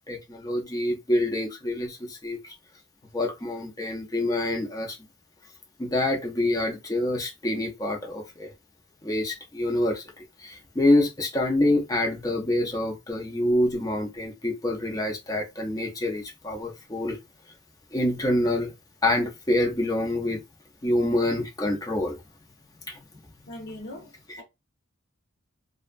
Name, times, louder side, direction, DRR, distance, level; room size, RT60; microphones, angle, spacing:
voice 1, 0.1-2.4 3.1-5.0 5.8-8.5 9.0-10.0 10.4-17.2 17.9-18.7 19.0-20.4 20.8-22.2 22.9-23.0, left 1 dB, 15° left, 0.6 m, -26 dB
voice 2, 23.5-24.4, left 1 dB, 55° left, 0.9 m, -41 dB
2.7 x 2.1 x 2.5 m
head